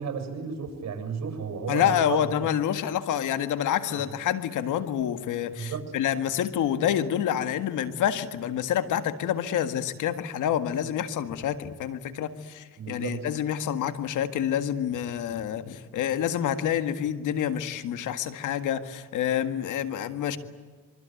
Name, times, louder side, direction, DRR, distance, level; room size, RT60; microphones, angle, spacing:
voice 1, 0.0-2.2 3.8-4.0 5.5-5.9 12.8-13.3, right 6 dB, 60° right, 6 dB, 7.3 m, -33 dB
voice 2, 1.7-20.4, left 10 dB, 80° left, 10 dB, 1.8 m, -28 dB
25.5 x 24.0 x 9.2 m, 1.5 s
cardioid pair, 90°, 30 cm